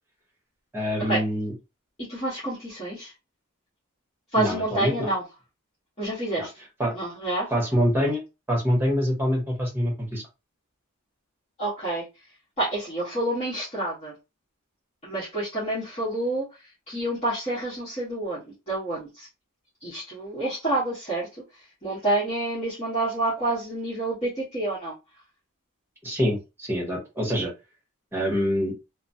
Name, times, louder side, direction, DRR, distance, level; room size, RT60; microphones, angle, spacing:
voice 1, 0.7-1.5 4.4-5.1 6.4-6.5 6.8-6.9 7.5-8.2 8.5-10.2 26.0-27.5 28.1-28.7, equal, 10° right, -1 dB, 1.1 m, -25 dB
voice 2, 2.0-3.1 4.3-5.2 6.0-6.5 6.9-7.7 11.6-12.0 12.6-14.1 15.0-16.5 16.9-18.4 18.7-19.3 19.8-21.3 21.5-24.9, right 1 dB, 30° left, -11 dB, 1.3 m, -28 dB
3.1 x 2.1 x 2.7 m, 0.27 s
head